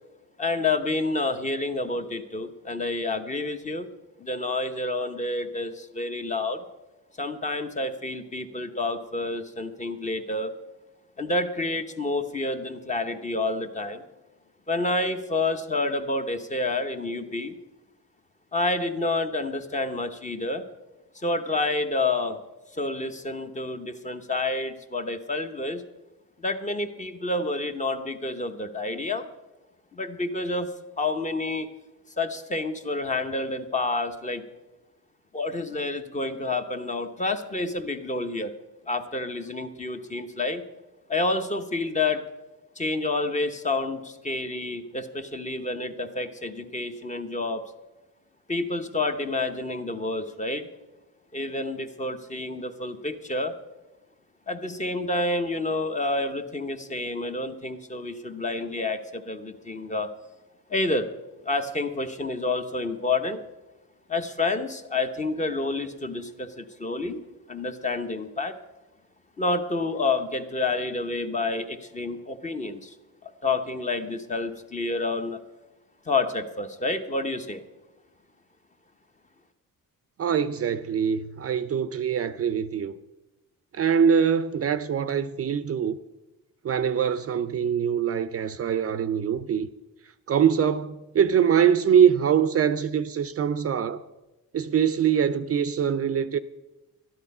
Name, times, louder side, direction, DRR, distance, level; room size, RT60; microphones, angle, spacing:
voice 1, 0.4-3.9 4.2-6.6 7.2-10.5 11.2-14.0 14.7-17.5 18.5-20.6 21.1-22.4 22.8-25.8 26.4-29.3 29.9-30.7 31.0-31.7 32.2-34.4 35.3-38.5 38.9-40.6 41.1-42.2 42.8-47.6 48.5-50.7 51.3-53.5 54.5-60.1 60.7-61.1 61.4-63.4 64.1-67.2 67.5-68.5 69.4-72.9 73.2-75.4 76.1-77.6, left 2 dB, 20° left, 0.9 m, -29 dB
voice 2, 80.2-82.9 83.7-85.9 86.6-89.7 90.3-94.0 94.5-96.4, right 8 dB, 45° right, 0.5 m, -23 dB
13.0 x 11.0 x 5.4 m
cardioid pair, 125°, 34 cm